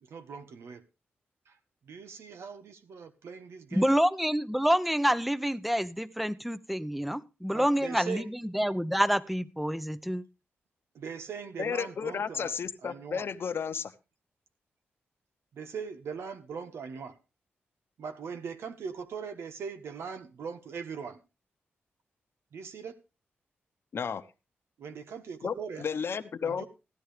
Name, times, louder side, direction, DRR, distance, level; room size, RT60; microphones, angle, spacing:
voice 1, 0.0-0.8 1.5-1.6 1.8-3.9 7.5-8.3 10.9-12.5 12.8-13.2 15.5-17.2 18.0-21.2 22.5-22.9 24.8-25.8 26.4-26.7, right 6 dB, 80° right, 9 dB, 1.4 m, -40 dB
voice 2, 3.7-8.2 8.5-10.2, equal, ahead, 16 dB, 0.8 m, -27 dB
voice 3, 11.6-13.9 23.9-24.2 25.4-26.7, left 6 dB, 65° left, 11 dB, 1.0 m, -33 dB
15.5 x 11.0 x 3.3 m, 0.28 s
cardioid pair, 65°, 4 cm